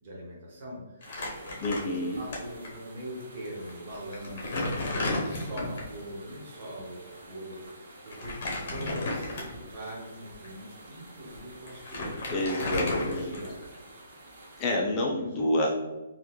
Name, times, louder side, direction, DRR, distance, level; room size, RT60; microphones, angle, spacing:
voice 1, 0.0-13.5 14.9-15.4, equal, 40° right, -3 dB, 1.2 m, -42 dB
Crumpling crinkling, 1.0-2.4 2.6-2.8 3.6-3.7 4.1-5.9 8.1-9.7 10.3-10.5 11.3-11.4 11.7-13.8, left 2 dB, 45° left, 0.9 m, -33 dB
sound 1, 1.0-14.8, right 1 dB, 60° right, 0.8 m, -50 dB
voice 2, 1.6-2.2 12.3-13.4 14.6-15.7, left 1 dB, 25° left, -2 dB, 0.4 m, -28 dB
3.6 x 2.3 x 3.0 m, 1.1 s
hypercardioid pair, 160°, 0 cm